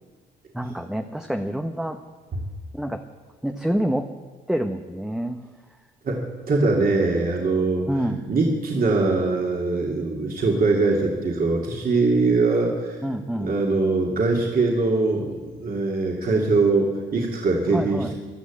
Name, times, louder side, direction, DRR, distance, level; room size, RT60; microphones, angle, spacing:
voice 1, 0.5-2.0 2.7-3.1 3.4-4.2 4.5-5.4 7.9-8.2 13.0-13.5 17.7-18.1, right 1 dB, 5° right, 5 dB, 0.9 m, -27 dB
voice 2, 6.0-7.9 8.3-13.0 13.4-18.1, right 3 dB, 45° right, -1 dB, 2.8 m, -22 dB
15.0 x 11.0 x 8.6 m, 1.4 s
cardioid pair, 90°, 20 cm